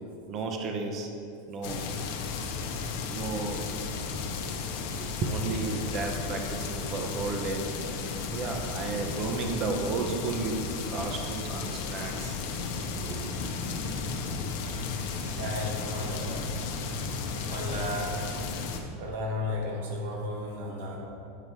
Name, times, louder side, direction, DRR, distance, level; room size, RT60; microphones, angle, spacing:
voice 1, 0.3-1.1 1.5-1.9 3.0-3.8 5.0-7.6 8.3-12.4 13.0-13.3, right 3 dB, 35° right, 3 dB, 0.6 m, -33 dB
sound 1, 1.6-18.8, left 5 dB, 65° left, 0.7 m, -34 dB
voice 2, 15.3-16.8 17.5-18.7 19.0-21.0, left 1 dB, 75° right, -2 dB, 1.3 m, -34 dB
8.2 x 3.0 x 5.4 m, 2.5 s
supercardioid pair, 135°, 0 cm